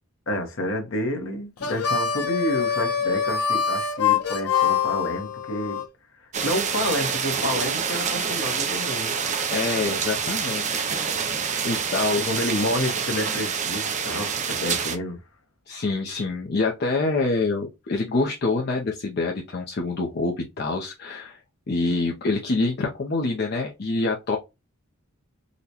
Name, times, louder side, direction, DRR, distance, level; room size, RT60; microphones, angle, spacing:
voice 1, 0.3-5.8 6.2-9.2 12.2-15.2, left 1 dB, 65° left, 0.9 m, -29 dB
Harmonica, 1.6-5.9, left 7 dB, 90° left, 0.7 m, -24 dB
sound 1, 6.3-15.0, right 6 dB, 35° right, 0.5 m, -27 dB
voice 2, 9.5-10.8 11.6-12.4 15.7-21.4 21.7-24.4, left 3 dB, 45° left, 0.5 m, -26 dB
3.8 x 2.1 x 2.8 m
head